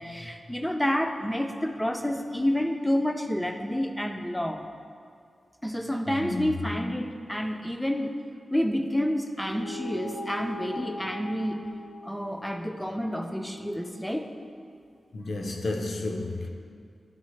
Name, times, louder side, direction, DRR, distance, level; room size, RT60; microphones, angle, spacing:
voice 1, 0.0-4.7 5.6-8.1 8.5-11.6 12.0-14.3, equal, 5° left, 0.3 m, -29 dB
voice 2, 6.1-6.9 15.1-16.5, left 2 dB, 55° left, 0.5 m, -32 dB
sound 1, 9.4-14.2, left 1 dB, 85° left, 1.7 m, -41 dB
10.5 x 4.1 x 3.2 m
wide cardioid pair, 165°, 0 cm